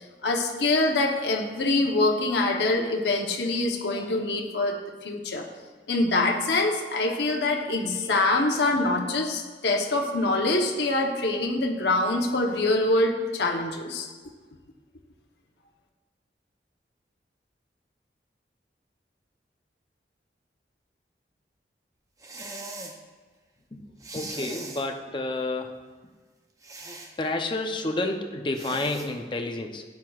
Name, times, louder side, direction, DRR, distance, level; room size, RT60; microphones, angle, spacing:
voice 1, 0.2-5.4 5.9-14.1, left 2 dB, 80° left, 1 dB, 1.0 m, -25 dB
sound 1, 22.2-23.0 24.0-24.9 26.6-27.1 28.5-29.1, right 2 dB, 20° right, 0.7 m, -39 dB
voice 2, 24.1-25.8 27.2-29.8, left 2 dB, 25° left, 4 dB, 0.6 m, -30 dB
12.5 x 9.3 x 2.4 m, 1.4 s
head